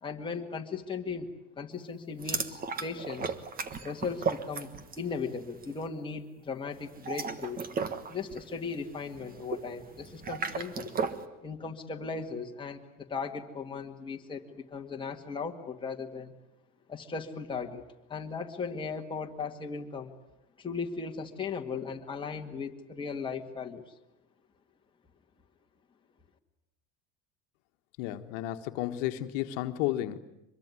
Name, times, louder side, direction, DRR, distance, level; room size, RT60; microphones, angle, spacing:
voice 1, 0.0-3.3 3.8-4.7 5.0-7.7 8.1-10.9 11.4-16.3 16.9-17.8 18.1-20.1 20.6-23.8, left 5 dB, 15° left, 1 dB, 2.0 m, -37 dB
sound 1, 2.2-5.1 5.4-5.7 6.9-11.3, right 5 dB, 20° right, 1.4 m, -35 dB
voice 2, 28.0-30.2, left 14 dB, 70° left, 7 dB, 1.6 m, -32 dB
24.5 x 22.0 x 9.8 m, 0.89 s
cardioid pair, 150°, 38 cm